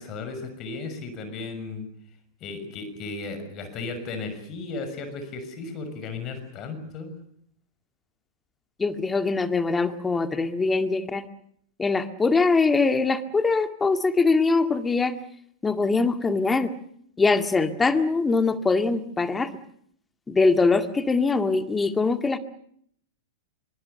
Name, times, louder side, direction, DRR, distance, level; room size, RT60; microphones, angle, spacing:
voice 1, 0.0-1.8 2.4-7.2, left 3 dB, 35° left, 9 dB, 6.3 m, -35 dB
voice 2, 8.8-11.2 11.8-15.1 15.6-16.7 17.2-19.5 20.3-22.4, left 3 dB, 15° left, 9 dB, 2.0 m, -22 dB
25.5 x 25.0 x 6.7 m, 0.67 s
figure-of-eight pair, 95°, 0 cm